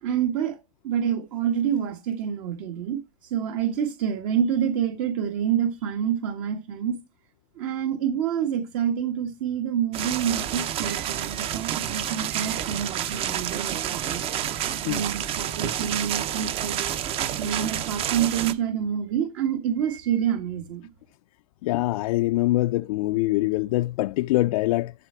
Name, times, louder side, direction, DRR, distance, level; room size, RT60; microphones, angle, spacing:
voice 1, 0.0-7.0 7.5-16.9 17.4-20.9, right 9 dB, 60° right, 1.6 m, -27 dB
sound 1, 9.9-18.5, right 10 dB, 30° right, 0.7 m, -29 dB
voice 2, 21.6-24.9, left 18 dB, 65° left, 0.4 m, -24 dB
12.5 x 4.5 x 4.4 m
supercardioid pair, 150°, 20 cm